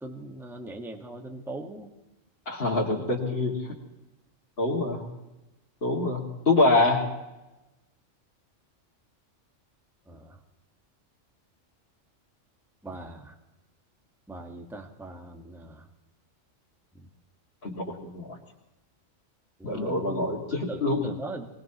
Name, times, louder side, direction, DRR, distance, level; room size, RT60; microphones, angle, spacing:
voice 1, 0.0-1.9 10.1-10.4 12.8-13.3 14.3-15.8 17.0-17.1 19.6-20.2 20.7-21.5, right 2 dB, ahead, 2 dB, 1.3 m, -40 dB
voice 2, 2.5-3.6 4.6-5.0 5.8-7.1 17.6-18.4 19.6-21.1, left 2 dB, 50° left, -3 dB, 2.4 m, -25 dB
24.5 x 19.5 x 3.0 m, 1.0 s
omnidirectional pair, 1.3 m